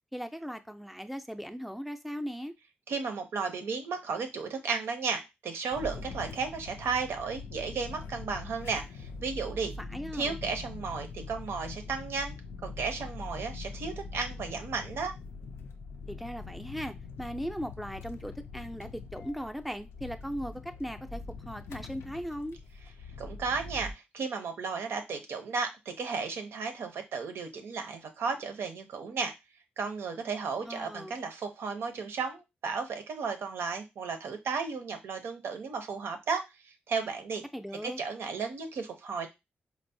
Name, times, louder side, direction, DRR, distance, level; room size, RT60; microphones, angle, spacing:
voice 1, 0.1-2.5 9.8-10.4 16.1-22.6 30.7-31.2 37.5-38.0, equal, ahead, 7 dB, 0.4 m, -38 dB
voice 2, 2.9-9.7 10.1-15.1 23.2-29.3 29.8-37.4 37.8-39.3, right 5 dB, 85° right, 6 dB, 0.6 m, -34 dB
sound 1, 5.7-23.9, left 4 dB, 90° left, 0.4 m, -43 dB
4.4 x 2.0 x 2.6 m, 0.22 s
cardioid pair, 80°, 4 cm